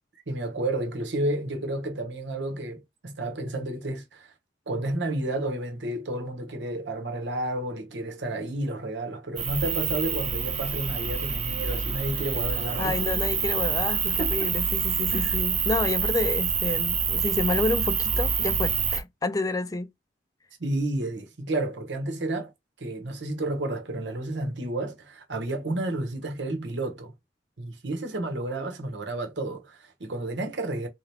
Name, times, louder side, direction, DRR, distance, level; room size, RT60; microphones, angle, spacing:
voice 1, 0.3-4.3 4.7-13.0 14.2-14.5 15.1-15.4 20.6-22.5 22.8-27.1 27.6-30.9, right 1 dB, 85° right, 1.1 m, -31 dB
sound 1, 9.4-19.0, right 6 dB, 35° right, 0.9 m, -27 dB
voice 2, 12.8-19.9, left 2 dB, 20° left, 0.4 m, -29 dB
3.7 x 2.9 x 3.4 m
head